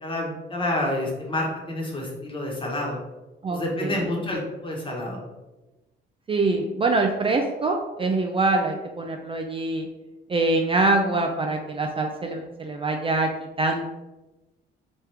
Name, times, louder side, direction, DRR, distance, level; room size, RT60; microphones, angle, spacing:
voice 1, 0.0-3.0 3.5-5.2, left 1 dB, 25° left, -2 dB, 1.2 m, -28 dB
voice 2, 3.4-4.1 6.3-9.9 10.3-13.3 13.6-13.9, right 2 dB, 25° right, 3 dB, 0.4 m, -24 dB
3.5 x 3.0 x 3.3 m, 1.1 s
cardioid pair, 90°, 20 cm